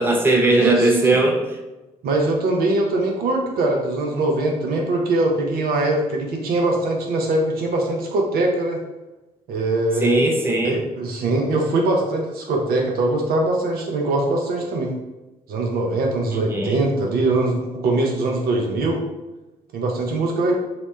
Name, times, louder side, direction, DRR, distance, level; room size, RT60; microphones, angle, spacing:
voice 1, 0.0-1.4 10.0-10.8 16.3-16.8, right 2 dB, 10° right, 1 dB, 0.5 m, -19 dB
voice 2, 0.6-1.2 2.0-8.8 9.5-10.1 10.6-15.0 15.5-19.0 19.7-20.6, right 2 dB, 55° right, 0 dB, 0.6 m, -22 dB
2.9 x 2.1 x 3.0 m, 1.1 s
figure-of-eight pair, 45°, 19 cm